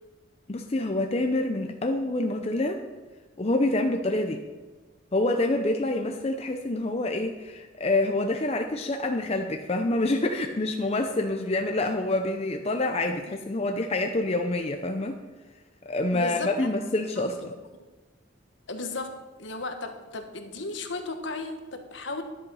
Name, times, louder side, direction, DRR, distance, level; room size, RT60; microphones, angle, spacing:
voice 1, 0.5-2.8 3.4-4.4 5.1-15.2 15.9-17.5, left 2 dB, 30° left, 4 dB, 0.6 m, -27 dB
voice 2, 16.1-16.7 17.7-17.9 18.7-22.2, left 3 dB, 65° left, 6 dB, 1.2 m, -35 dB
11.0 x 7.8 x 5.5 m, 1.3 s
head